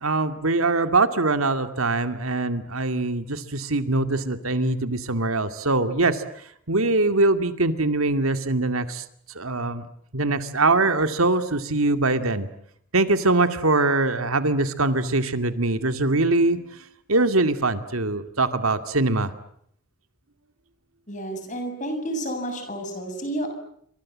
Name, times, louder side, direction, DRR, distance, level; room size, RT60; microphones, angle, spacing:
voice 1, 0.0-6.2 6.7-9.0 9.4-9.8 10.1-12.5 12.9-16.6 17.1-19.3, right 2 dB, 90° right, 9 dB, 2.3 m, -22 dB
voice 2, 21.1-23.5, right 1 dB, 35° left, 6 dB, 7.4 m, -30 dB
28.5 x 26.0 x 7.5 m, 0.69 s
head